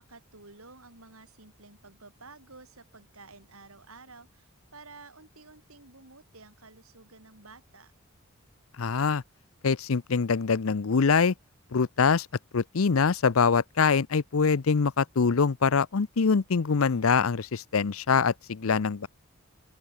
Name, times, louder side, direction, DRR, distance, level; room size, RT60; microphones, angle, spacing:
voice 1, 0.0-7.9, right 3 dB, 80° right, 6.7 m, -52 dB
voice 2, 8.8-9.2 9.6-11.3 11.7-12.3 12.5-19.1, left 5 dB, 75° left, 0.6 m, -24 dB
open air
head